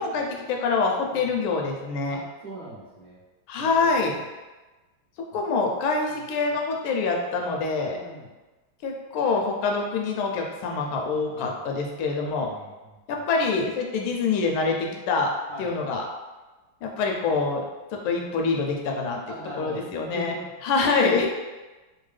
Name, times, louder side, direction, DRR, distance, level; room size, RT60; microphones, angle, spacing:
voice 1, 0.0-2.2 3.5-4.1 5.3-8.0 8.8-12.5 13.1-15.3 15.6-16.0 16.8-17.6 17.9-19.2 19.6-20.4 20.6-21.3, left 4 dB, 85° left, 1 dB, 1.4 m, -25 dB
voice 2, 2.1-3.2 3.6-4.3 6.1-6.2 7.9-8.3 11.1-11.8 12.4-13.0 15.5-15.7 19.3-19.8 20.1-20.5, right 1 dB, 65° right, -8 dB, 0.9 m, -41 dB
3.6 x 2.2 x 3.2 m, 1.2 s
omnidirectional pair, 2.2 m